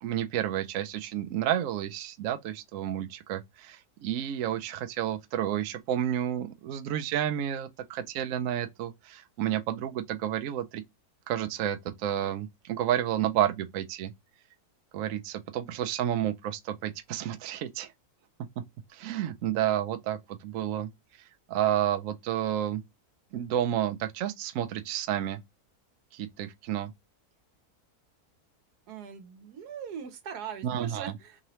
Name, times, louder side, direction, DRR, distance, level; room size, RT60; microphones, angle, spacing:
voice 1, 0.0-10.8 11.3-14.1 14.9-17.9 18.9-20.9 21.5-22.8 23.3-25.4 26.1-26.9 30.6-31.1, right 11 dB, 70° right, 0.9 m, -30 dB
voice 2, 28.9-31.4, right 7 dB, 90° right, 1.4 m, -41 dB
3.7 x 2.9 x 3.0 m
omnidirectional pair, 1.6 m